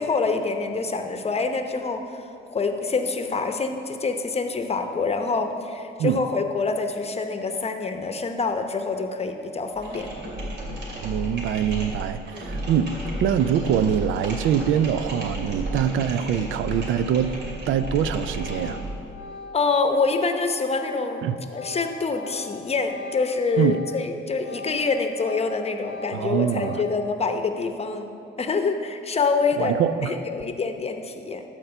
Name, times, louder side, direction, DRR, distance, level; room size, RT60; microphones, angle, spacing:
voice 1, 0.0-10.1 12.3-12.5 19.5-21.3 21.5-28.1 28.4-31.4, left 4 dB, 30° left, 6 dB, 0.8 m, -26 dB
sound 1, 9.7-19.1, right 1 dB, 60° right, 2.6 m, -33 dB
voice 2, 11.0-17.3 17.7-18.8 21.2-21.4 23.6-23.8 26.1-26.8 29.6-30.1, right 9 dB, 80° right, 13 dB, 0.4 m, -24 dB
Organ, 17.2-17.4 17.7-24.1 24.3-27.2, left 4 dB, 85° left, 0.7 m, -41 dB
12.5 x 4.5 x 6.8 m, 2.7 s
cardioid pair, 90°, 20 cm